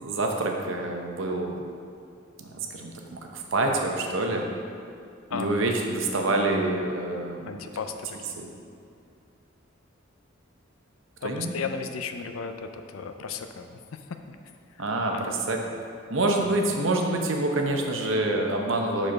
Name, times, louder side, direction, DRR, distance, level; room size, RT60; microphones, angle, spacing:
voice 1, 0.0-1.6 2.4-4.5 5.3-7.7 8.4-8.5 11.2-11.5 14.8-15.6 16.1-19.1, right 2 dB, 65° right, 2 dB, 0.7 m, -27 dB
voice 2, 5.3-5.6 7.4-8.4 11.2-14.4 14.7-14.8 15.1-15.3 16.4-16.6, left 5 dB, 85° left, 7 dB, 0.4 m, -35 dB
5.1 x 4.3 x 5.8 m, 2.4 s
head